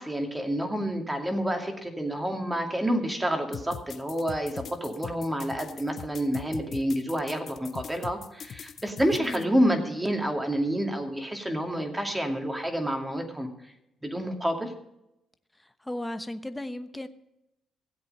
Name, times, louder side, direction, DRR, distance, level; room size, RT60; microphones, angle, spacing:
voice 1, 0.0-13.5 14.0-14.7, equal, 10° right, 4 dB, 2.4 m, -28 dB
sound 1, 3.5-9.4, left 8 dB, 55° left, 0.8 m, -40 dB
voice 2, 9.2-9.5 15.9-17.1, left 1 dB, 10° left, 9 dB, 1.0 m, -35 dB
16.5 x 8.1 x 5.4 m, 0.87 s
cardioid pair, 90°, 0 cm